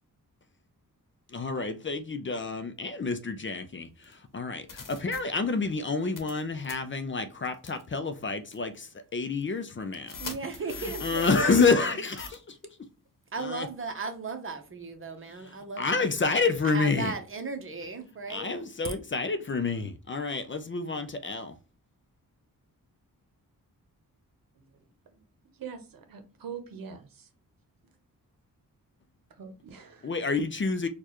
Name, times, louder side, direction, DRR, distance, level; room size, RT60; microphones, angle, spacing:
voice 1, 1.3-10.2 11.0-12.6 13.4-13.7 15.8-17.1 18.3-21.6 30.0-30.9, left 4 dB, 35° left, 0.5 m, -28 dB
sound 1, 4.0-4.1 4.7-5.2 6.2-6.4 6.6-6.7 7.6-7.8 8.5-8.6 10.1-11.9 12.2-12.3, left 6 dB, 65° left, 1.0 m, -40 dB
voice 2, 10.2-12.0 13.3-16.2 16.6-18.7, right 4 dB, 35° right, 0.9 m, -37 dB
voice 3, 24.6-25.2 25.5-27.3 29.4-30.1, right 7 dB, 70° right, 0.8 m, -44 dB
4.5 x 2.4 x 2.9 m
cardioid pair, 80°, 35 cm